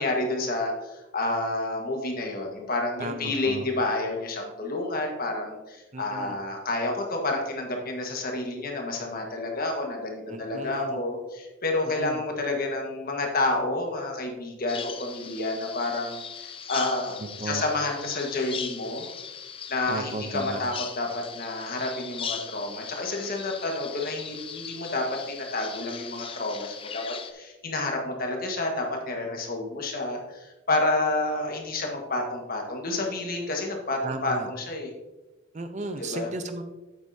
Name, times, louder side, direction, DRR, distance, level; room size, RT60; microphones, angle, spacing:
voice 1, 0.0-17.2 17.4-19.0 19.7-27.0 27.3-34.9 36.1-36.3, left 2 dB, 45° left, 1 dB, 1.5 m, -29 dB
voice 2, 3.0-3.6 5.9-6.4 10.3-11.0 12.0-12.2 17.4-17.6 19.9-20.6 34.0-34.5 35.5-36.6, right 2 dB, 35° right, 8 dB, 0.6 m, -35 dB
Bird vocalization bird call bird song, 14.7-27.3, left 7 dB, 25° left, 0.5 m, -39 dB
8.3 x 8.0 x 2.7 m, 1.1 s
head